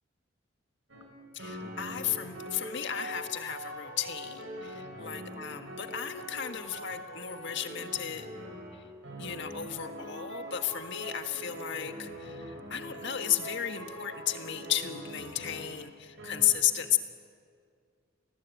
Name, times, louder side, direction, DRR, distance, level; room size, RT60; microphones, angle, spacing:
sound 1, 0.9-1.1 1.4-15.8 16.2-16.5, equal, 65° right, 6.5 m, -43 dB
voice 1, 1.3-8.3 8.7-8.8 9.2-17.0, left 10 dB, 65° left, 7 dB, 1.6 m, -33 dB
30.0 x 19.5 x 8.4 m, 2.2 s
head